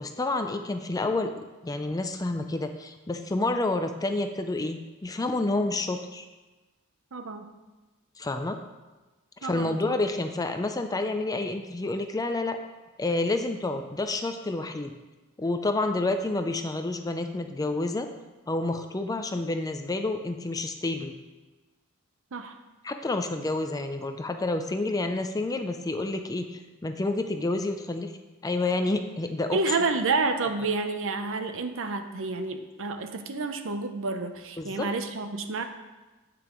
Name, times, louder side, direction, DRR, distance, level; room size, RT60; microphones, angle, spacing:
voice 1, 0.0-1.3 1.6-6.3 8.2-8.6 9.4-12.6 13.0-14.9 15.4-18.1 18.5-21.1 22.8-28.1 28.4-29.6 34.6-34.9, left 2 dB, 15° left, 7 dB, 0.4 m, -29 dB
voice 2, 7.1-7.5 9.4-10.0 22.3-22.6 29.5-35.6, right 3 dB, 65° right, 7 dB, 0.7 m, -29 dB
8.6 x 8.4 x 3.1 m, 1.2 s
head